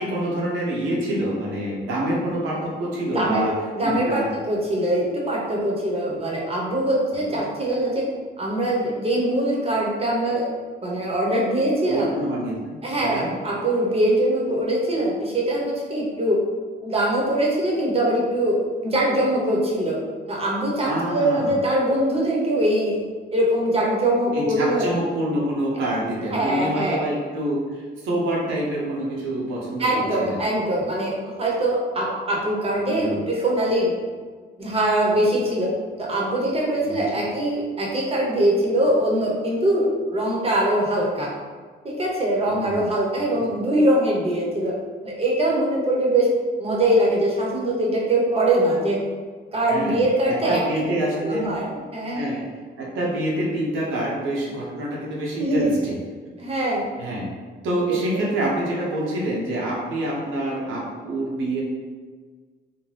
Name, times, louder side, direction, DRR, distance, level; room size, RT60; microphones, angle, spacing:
voice 1, 0.0-3.5 3.8-4.3 7.3-7.4 11.8-13.3 20.8-21.6 24.3-29.9 30.2-30.4 32.8-33.2 36.8-37.0 42.5-42.8 43.3-43.4 49.7-50.0 50.3-51.5 52.1-52.4 52.8-56.0 57.0-57.3 57.6-61.6, right 1 dB, 80° right, -4 dB, 0.9 m, -26 dB
voice 2, 3.1-3.5 3.7-8.1 8.4-10.5 10.8-12.1 12.8-16.4 16.8-20.0 20.3-23.0 23.3-24.9 26.3-27.0 29.8-33.9 34.6-35.7 36.0-41.3 41.8-44.8 45.0-46.3 46.6-49.0 49.5-50.8 51.2-52.2 55.4-55.7 56.4-56.9 58.1-58.2, right 1 dB, 30° right, -3 dB, 0.8 m, -22 dB
2.6 x 2.1 x 3.2 m, 1.5 s
cardioid pair, 90°, 20 cm